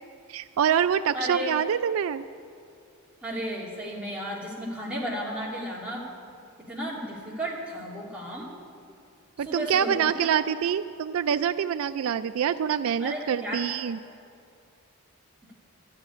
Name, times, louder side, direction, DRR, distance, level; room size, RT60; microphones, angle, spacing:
voice 1, 0.3-2.2 9.4-14.0, right 8 dB, 65° right, 12 dB, 0.3 m, -26 dB
voice 2, 1.1-1.5 3.2-6.0 6.7-8.5 9.4-10.4 13.0-13.7, equal, 5° right, -6 dB, 2.5 m, -33 dB
13.0 x 8.1 x 9.9 m, 2.5 s
head